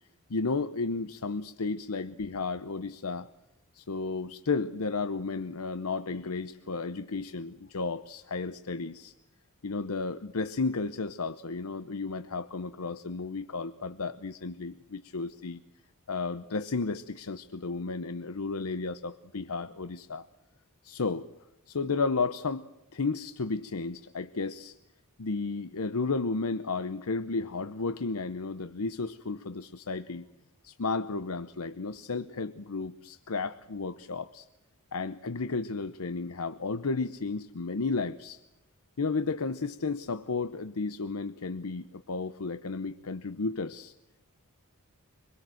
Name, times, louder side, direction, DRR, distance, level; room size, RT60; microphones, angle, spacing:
voice 1, 0.3-3.3 3.7-9.1 9.6-15.6 16.1-20.3 20.8-21.3 21.7-22.7 22.9-24.8 25.2-30.3 30.6-34.5 34.9-38.4 39.0-43.9, left 4 dB, 75° left, 11 dB, 0.8 m, -33 dB
25.5 x 22.0 x 7.8 m, 0.89 s
head